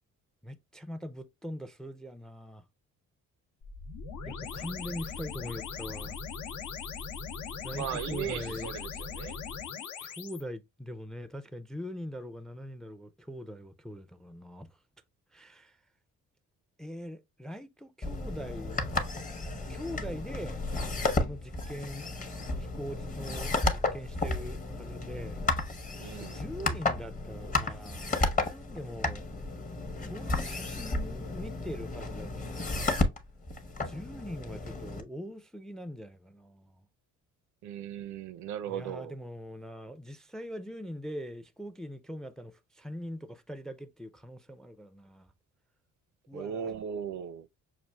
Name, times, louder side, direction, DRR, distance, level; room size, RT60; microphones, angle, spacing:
voice 1, 0.4-2.7 4.3-6.2 7.6-8.7 10.0-14.7 15.3-15.8 16.8-18.8 19.7-20.6 21.1-22.1 22.6-25.5 26.2-29.3 30.0-32.8 33.9-36.9 38.7-45.3 46.3-46.7, equal, ahead, 0.3 m, -42 dB
sound 1, 3.6-10.4, left 5 dB, 80° left, 0.8 m, -39 dB
voice 2, 7.7-9.4 26.0-26.4 37.6-39.1 46.3-47.5, right 9 dB, 70° right, 0.5 m, -37 dB
sound 2, 18.0-35.0, left 2 dB, 25° left, 0.7 m, -33 dB
5.9 x 2.4 x 2.2 m
cardioid pair, 90°, 30 cm